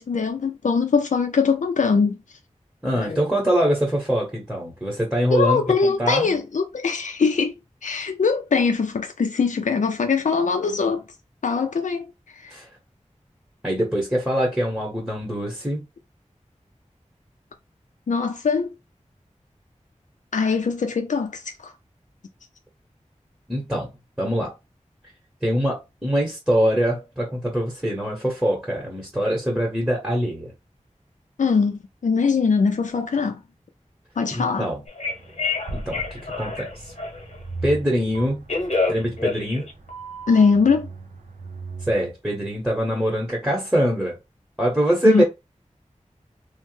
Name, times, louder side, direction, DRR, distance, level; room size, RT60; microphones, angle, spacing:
voice 1, 0.0-2.2 2.9-3.2 5.3-11.0 11.4-12.6 18.1-18.7 20.3-21.7 31.4-33.4 34.2-34.7 40.3-40.9 45.0-45.2, left 5 dB, 75° left, 0.4 m, -22 dB
voice 2, 2.8-6.3 12.5-12.7 13.6-15.8 23.5-23.9 24.2-24.5 25.4-30.5 34.3-34.8 35.7-36.9 37.6-38.4 38.9-39.7 41.8-44.2 44.6-45.2, equal, 5° right, 1.0 m, -23 dB
Telephone, 34.9-37.4 38.1-40.5, left 3 dB, 60° left, 1.1 m, -28 dB
sound 1, 35.0-41.9, right 3 dB, 85° right, 0.5 m, -38 dB
3.1 x 2.0 x 3.1 m
wide cardioid pair, 60°, 13 cm